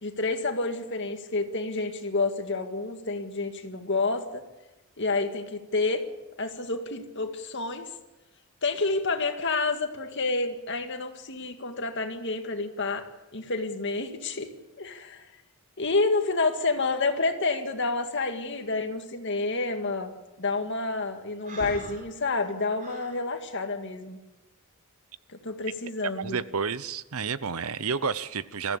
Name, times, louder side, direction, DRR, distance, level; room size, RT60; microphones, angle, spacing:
voice 1, 0.0-4.4 5.0-6.1 6.4-7.9 8.6-13.1 13.3-14.5 14.8-15.3 15.8-20.1 20.4-24.2 25.3-26.4, left 3 dB, 55° left, 6 dB, 2.0 m, -29 dB
Breathing, 21.4-23.2, right 1 dB, 40° right, 4.4 m, -42 dB
voice 2, 26.2-28.8, right 5 dB, 75° right, 16 dB, 0.8 m, -30 dB
23.0 x 14.5 x 8.7 m, 1.1 s
head